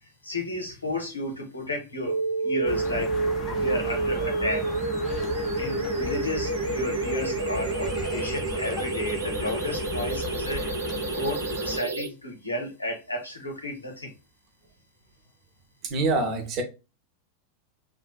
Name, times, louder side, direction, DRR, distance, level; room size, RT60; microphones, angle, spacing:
voice 1, 0.0-3.1 3.5-4.7 5.6-10.6 11.1-14.1, left 1 dB, 80° left, 0.8 m, -33 dB
sound 1, 2.1-12.1, right 3 dB, 70° right, 0.4 m, -29 dB
sound 2, 2.6-11.8, left 5 dB, 30° left, 0.5 m, -36 dB
voice 2, 15.9-16.6, right 2 dB, 35° right, 0.7 m, -25 dB
2.5 x 2.4 x 2.3 m
figure-of-eight pair, 90°, 0 cm